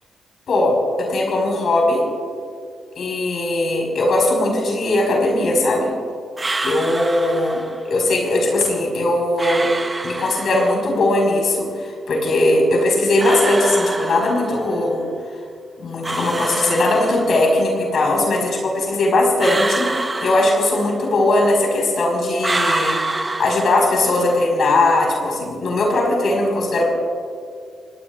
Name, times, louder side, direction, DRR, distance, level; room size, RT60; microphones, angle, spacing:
voice 1, 0.5-2.0 2.9-5.9 6.6-9.7 10.0-15.0 15.8-19.9 20.2-26.8, left 2 dB, 65° left, 0 dB, 5.1 m, -19 dB
sound 1, 6.4-7.9 9.4-10.9 13.2-14.7 16.0-17.6 19.4-21.1 22.4-24.3, right 2 dB, 25° right, 1.1 m, -26 dB
28.0 x 18.0 x 2.5 m, 2.2 s
supercardioid pair, 55°, 0 cm